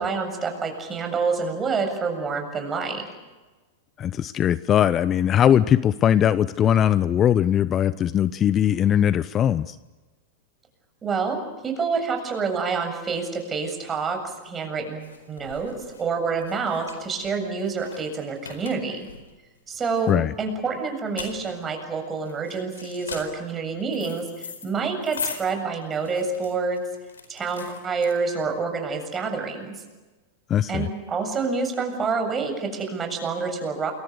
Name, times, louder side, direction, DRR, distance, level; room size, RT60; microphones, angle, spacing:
voice 1, 0.0-3.0 11.0-15.7 16.0-19.1 19.7-20.1 20.4-26.8 27.3-29.8 30.7-33.9, right 4 dB, 20° right, 4 dB, 7.4 m, -27 dB
voice 2, 4.0-9.8 20.1-20.3 30.5-30.9, left 10 dB, 30° left, 16 dB, 0.7 m, -20 dB
sound 1, 14.2-28.6, left 5 dB, 85° left, 4.5 m, -40 dB
29.0 x 23.0 x 6.8 m, 1.2 s
hypercardioid pair, 100°, 0 cm